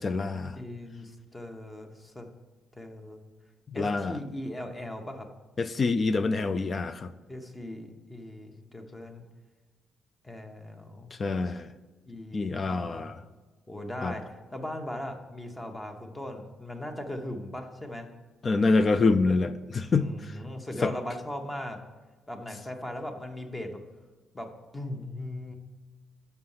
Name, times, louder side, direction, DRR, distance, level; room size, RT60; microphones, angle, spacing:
voice 1, 0.0-0.6 3.7-4.2 5.6-7.1 11.1-11.7 12.3-13.2 14.0-14.2 18.4-20.4 20.8-20.9, left 3 dB, 40° left, 11 dB, 0.4 m, -26 dB
voice 2, 0.5-2.3 2.7-3.2 3.7-5.3 7.3-9.3 10.2-11.1 12.1-13.1 13.7-18.1 20.0-21.8 22.3-23.8 24.3-24.5 24.7-25.5, left 1 dB, 15° left, 4 dB, 1.0 m, -39 dB
5.9 x 5.6 x 5.6 m, 1.3 s
cardioid pair, 90°, 0 cm